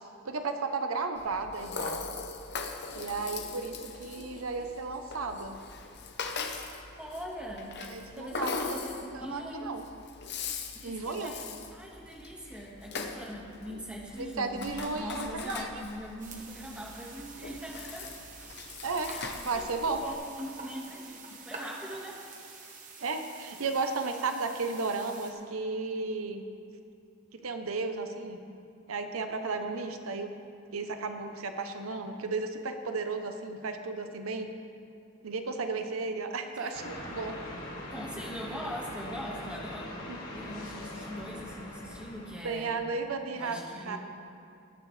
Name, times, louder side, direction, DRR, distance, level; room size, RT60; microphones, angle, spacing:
voice 1, 0.2-2.0 2.9-3.7 4.0-5.6 7.9-8.5 9.1-9.8 10.8-11.3 14.2-15.7 18.8-20.0 23.0-26.4 27.4-28.4 28.9-30.3 30.7-34.5 35.2-37.3 40.1-40.2 42.4-44.0, right 3 dB, 85° right, 6 dB, 0.8 m, -34 dB
Rattle (instrument), 1.2-20.1, left 4 dB, 55° left, 0.9 m, -41 dB
voice 2, 7.0-7.7 8.1-9.7 10.7-14.6 14.9-18.1 19.0-22.2 36.6-36.8 37.9-40.0 40.3-42.7 43.4-44.0, equal, 5° right, -3 dB, 1.6 m, -41 dB
sound 1, 16.2-25.3, right 4 dB, 40° right, 1.3 m, -47 dB
sound 2, 36.7-42.9, left 1 dB, 85° left, 2.6 m, -42 dB
19.5 x 9.7 x 3.3 m, 2.6 s
head